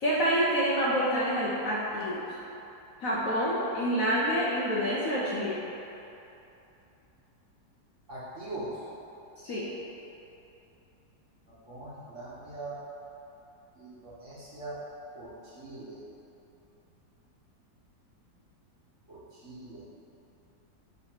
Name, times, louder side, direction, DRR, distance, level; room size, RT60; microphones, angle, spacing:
voice 1, 0.0-2.2 3.0-5.6 9.4-9.6, equal, 55° left, -6 dB, 1.0 m, -27 dB
voice 2, 8.1-8.7 11.7-12.8 13.8-14.7 15.1-16.0 19.1-19.8, right 2 dB, 45° right, -8 dB, 1.5 m, -42 dB
9.4 x 3.2 x 4.6 m, 2.9 s
omnidirectional pair, 2.0 m